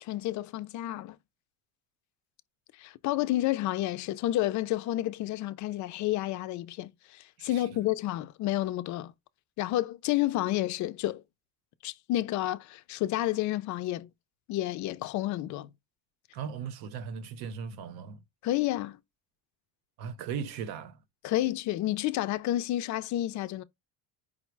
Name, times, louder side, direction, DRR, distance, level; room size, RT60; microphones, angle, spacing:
voice 1, 0.0-1.2 2.8-9.1 9.6-11.2 11.8-14.1 14.5-15.7 18.4-19.0 21.2-23.6, left 15 dB, 45° left, 0.4 m, -30 dB
voice 2, 7.4-7.9 16.3-18.2 20.0-21.0, right 7 dB, 65° right, 0.8 m, -38 dB
5.1 x 2.1 x 4.5 m
cardioid pair, 155°, 42 cm